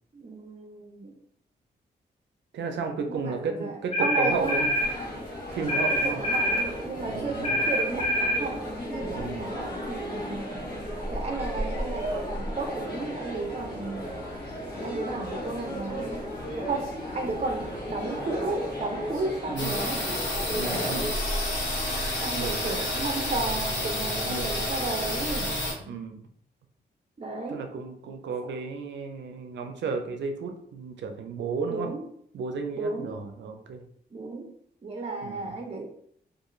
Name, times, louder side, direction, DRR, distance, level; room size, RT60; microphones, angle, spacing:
voice 1, 0.1-1.2 3.1-4.6 6.0-10.5 11.1-14.0 14.8-16.3 16.5-20.0 22.2-25.5 27.2-27.6 28.4-28.5 31.7-32.0 32.7-33.2 34.1-34.5 34.8-35.9, right 3 dB, 35° right, 1 dB, 0.5 m, -33 dB
voice 2, 2.5-4.7 5.5-6.2 7.0-7.5 9.0-9.5 19.5-19.8 20.5-21.1 22.3-22.9 24.2-24.6 25.9-26.3 27.5-31.9 32.3-33.8 35.2-35.6, right 5 dB, 85° right, 6 dB, 0.4 m, -33 dB
sound 1, 3.9-4.9 5.7-6.7 7.4-8.4, equal, 30° left, 1.1 m, -25 dB
sound 2, 4.3-21.1, equal, 60° left, 1.1 m, -34 dB
sound 3, 19.6-25.7, left 1 dB, 90° left, 1.2 m, -29 dB
2.4 x 2.3 x 3.0 m, 0.66 s
cardioid pair, 65°, 18 cm